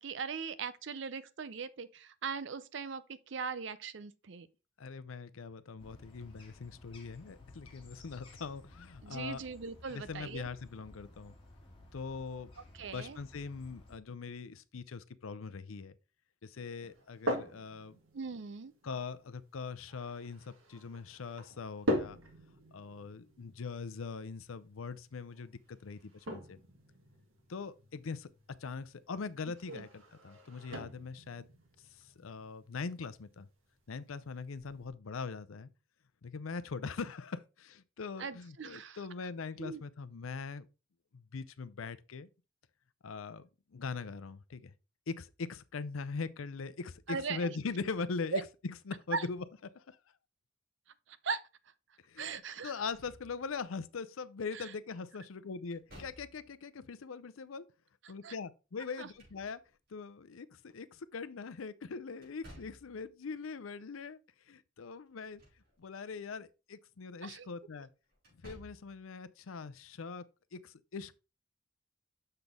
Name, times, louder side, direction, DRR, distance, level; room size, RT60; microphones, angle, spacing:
voice 1, 0.0-4.5 9.0-10.5 12.8-13.2 18.1-18.7 29.7-29.9 38.2-39.0 39.6-39.8 47.1-47.5 48.3-48.4 49.1-49.2 51.2-51.4 52.2-52.7 54.5-54.7 58.2-58.3 59.0-59.1 67.2-67.5, right 5 dB, 65° right, 0.5 m, -39 dB
voice 2, 4.8-9.4 9.9-11.4 11.9-12.5 12.8-15.9 16.4-18.0 18.8-22.2 22.7-26.6 27.5-28.3 28.6-31.5 31.9-33.5 33.9-35.7 36.2-40.7 41.1-42.3 43.0-44.7 45.1-49.4 49.7-50.0 52.0-57.7 58.1-59.6 59.9-64.2 64.5-65.4 65.8-67.9 68.4-70.2 70.5-71.1, left 4 dB, 90° left, 0.6 m, -41 dB
sound 1, 5.8-14.0, left 1 dB, 25° left, 1.9 m, -56 dB
sound 2, 16.8-34.9, equal, 85° right, 1.7 m, -43 dB
Slam / Thump thud, 52.8-53.7 55.7-56.6 58.8-59.9 62.2-63.0 65.1-65.7 66.1-66.2 68.2-69.0, equal, 50° right, 4.5 m, -55 dB
6.6 x 6.0 x 3.5 m
head